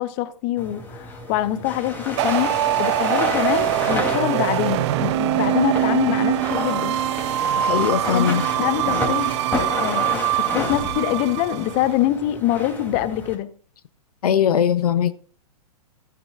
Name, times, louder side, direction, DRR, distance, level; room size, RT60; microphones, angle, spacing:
voice 1, 0.0-2.5 2.8-7.0 8.1-9.3 9.7-13.5, left 13 dB, 35° left, 0.8 m, -24 dB
sound 1, 0.6-13.3, left 2 dB, 10° left, 2.9 m, -31 dB
sound 2, 2.2-11.8, right 12 dB, 45° right, 0.7 m, -23 dB
voice 2, 7.6-8.4 14.2-15.1, left 8 dB, 70° left, 0.7 m, -20 dB
15.0 x 9.7 x 2.5 m
hypercardioid pair, 115°, 20 cm